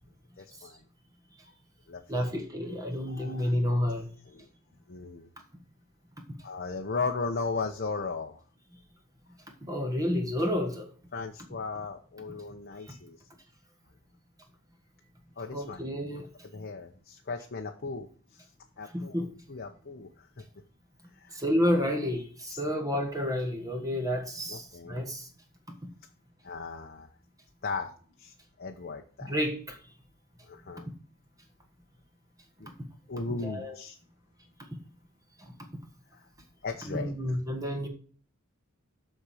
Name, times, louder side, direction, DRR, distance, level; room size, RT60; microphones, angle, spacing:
voice 1, 0.4-0.8 1.9-2.3 3.1-3.5 4.3-4.5 4.9-5.3 6.4-8.4 11.1-13.2 15.4-15.9 16.4-18.1 18.3-18.4 18.8-20.3 21.2-21.4 22.5-22.6 24.5-25.0 26.4-27.1 27.6-29.4 30.5-30.9 32.6-32.7 33.1-34.0 36.1-36.2 36.6-37.4, left 4 dB, 45° left, 0.8 m, -37 dB
voice 2, 2.1-4.1 9.6-10.9 15.5-16.3 16.6-16.7 18.9-19.3 21.3-25.3 25.7-25.9 29.2-29.8 33.3-33.7 35.4-35.5 36.9-37.9, equal, 15° right, 1.4 m, -30 dB
13.0 x 4.4 x 4.9 m
head